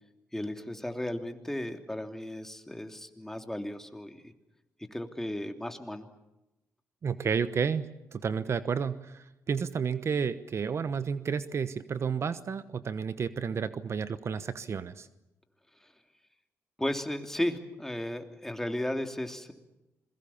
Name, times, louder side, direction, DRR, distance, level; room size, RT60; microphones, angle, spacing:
voice 1, 0.3-4.3 4.9-6.1 16.8-19.5, left 1 dB, 5° left, 5 dB, 3.0 m, -35 dB
voice 2, 7.0-15.1, right 6 dB, 55° right, 13 dB, 1.1 m, -31 dB
27.0 x 22.0 x 7.2 m, 0.95 s
cardioid pair, 70°, 6 cm